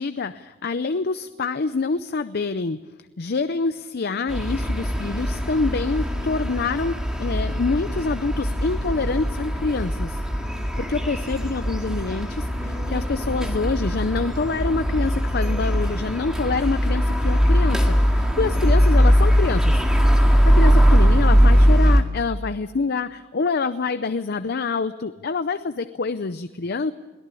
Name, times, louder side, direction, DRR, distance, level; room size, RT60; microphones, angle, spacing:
voice 1, 0.0-2.8 3.2-10.2 10.8-19.8 20.3-26.9, left 4 dB, 55° left, 11 dB, 0.6 m, -26 dB
sound 1, 4.3-22.0, equal, 5° right, 2.1 m, -20 dB
22.5 x 17.0 x 8.4 m, 1.2 s
head